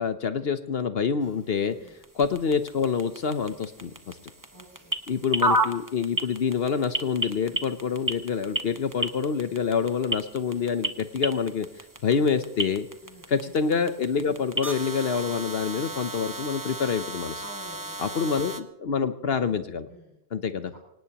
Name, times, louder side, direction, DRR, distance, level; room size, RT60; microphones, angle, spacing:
voice 1, 0.0-1.8 2.1-4.2 5.1-11.7 12.0-12.9 13.3-17.4 18.0-19.9 20.3-20.7, left 6 dB, 65° left, 10 dB, 1.0 m, -27 dB
sound 1, 1.2-18.6, right 1 dB, 20° right, 1.0 m, -34 dB
voice 2, 4.5-4.9 13.0-13.3 17.4-18.4 19.9-20.2 20.7-20.8, equal, 15° left, -7 dB, 6.4 m, -48 dB
25.0 x 18.5 x 2.9 m, 0.86 s
omnidirectional pair, 1.2 m